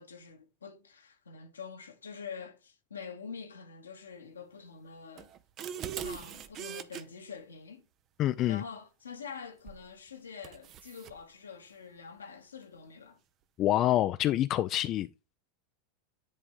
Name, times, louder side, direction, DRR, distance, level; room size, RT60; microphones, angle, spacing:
voice 1, 0.0-5.3 5.9-7.8 8.5-13.2, left 6 dB, 85° left, 1.3 m, -46 dB
sound 1, 5.2-7.0 9.7-9.9 10.4-11.2, right 9 dB, 40° right, 0.7 m, -41 dB
voice 2, 8.2-8.6 13.6-15.1, left 13 dB, 45° left, 0.4 m, -26 dB
10.0 x 4.1 x 3.7 m
hypercardioid pair, 90°, 0 cm